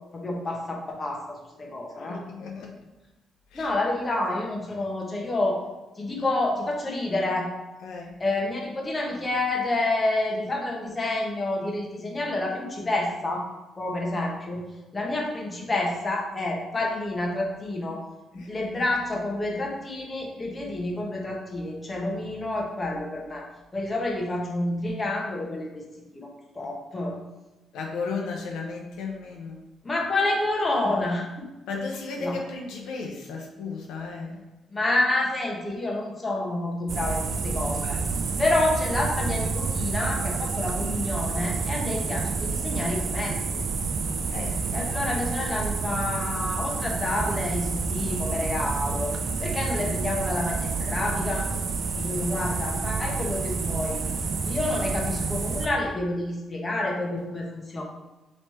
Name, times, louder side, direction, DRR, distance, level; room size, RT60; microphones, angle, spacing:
voice 1, 0.1-2.2 3.5-5.6 6.0-7.5 8.2-13.5 13.8-14.6 14.9-18.0 18.3-23.4 23.7-25.8 26.1-27.2 29.8-31.5 32.2-32.4 34.7-38.0 38.4-43.6 44.7-49.1 49.4-51.5 51.9-54.0 54.4-57.8, left 2 dB, 25° left, -1 dB, 1.0 m, -28 dB
voice 2, 2.0-2.8 3.5-3.7 7.8-8.2 18.4-18.5 27.7-29.6 31.7-34.4 44.3-44.6, left 4 dB, 85° left, 0 dB, 0.5 m, -34 dB
sound 1, 36.9-55.7, right 4 dB, 55° right, 0.5 m, -29 dB
3.2 x 3.1 x 4.2 m, 1.1 s
cardioid pair, 90°, 0 cm